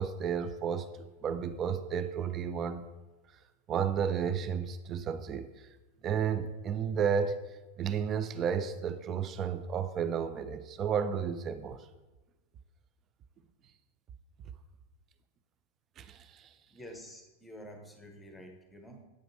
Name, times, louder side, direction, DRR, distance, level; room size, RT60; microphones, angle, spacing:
voice 1, 0.0-2.8 3.7-5.5 6.0-7.4 7.8-11.8 16.0-16.5, right 7 dB, 30° right, 11 dB, 0.4 m, -32 dB
voice 2, 16.7-19.0, equal, 5° left, 4 dB, 1.0 m, -49 dB
8.1 x 5.0 x 3.0 m, 1.1 s
figure-of-eight pair, 90°, 0 cm